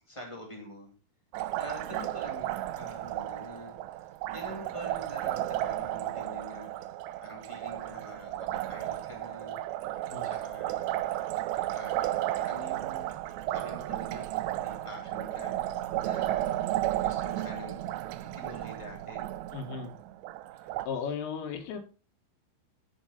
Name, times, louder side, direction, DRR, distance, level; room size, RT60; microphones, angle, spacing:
voice 1, 0.1-0.9 1.5-3.7 4.3-6.7 7.2-9.6 10.2-11.0 11.3-13.1 13.5-14.3 14.6-16.7 17.0-17.8 18.2-19.3, left 1 dB, 25° left, 0 dB, 0.6 m, -46 dB
Liquid, 1.3-20.9, right 14 dB, 85° right, 2.5 m, -33 dB
voice 2, 19.5-20.0 20.9-21.8, left 6 dB, 80° left, 5 dB, 4.4 m, -35 dB
11.0 x 9.1 x 4.2 m, 0.32 s
omnidirectional pair, 5.7 m